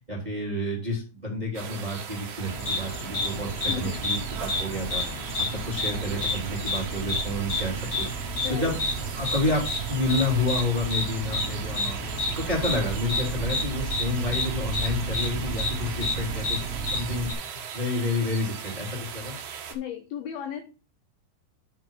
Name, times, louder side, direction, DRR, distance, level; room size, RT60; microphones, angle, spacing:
voice 1, 0.0-8.0 8.5-8.8 9.1-12.0 12.4-19.3, left 2 dB, 10° right, -3 dB, 2.2 m, -30 dB
sound 1, 1.5-19.7, right 7 dB, 75° right, 1.7 m, -38 dB
sound 2, 2.5-17.3, equal, 40° left, 3.3 m, -30 dB
voice 2, 8.4-8.8 19.7-20.6, left 10 dB, 80° left, 6 dB, 2.2 m, -34 dB
8.8 x 4.7 x 5.5 m, 0.34 s
omnidirectional pair, 5.2 m